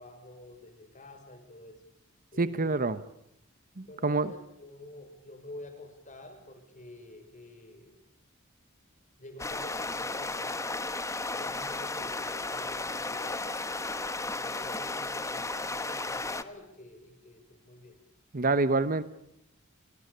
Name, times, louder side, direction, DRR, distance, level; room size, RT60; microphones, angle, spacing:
voice 1, 0.0-1.8 2.3-3.0 3.8-8.0 9.2-10.9 11.3-14.0 14.3-18.0, left 1 dB, 35° left, 7 dB, 6.1 m, -49 dB
voice 2, 2.4-3.0 3.8-4.3 18.3-19.0, right 3 dB, 40° right, 14 dB, 1.1 m, -26 dB
sound 1, 9.4-16.4, left 3 dB, 15° left, 1.2 m, -34 dB
29.5 x 23.5 x 6.9 m, 0.81 s
head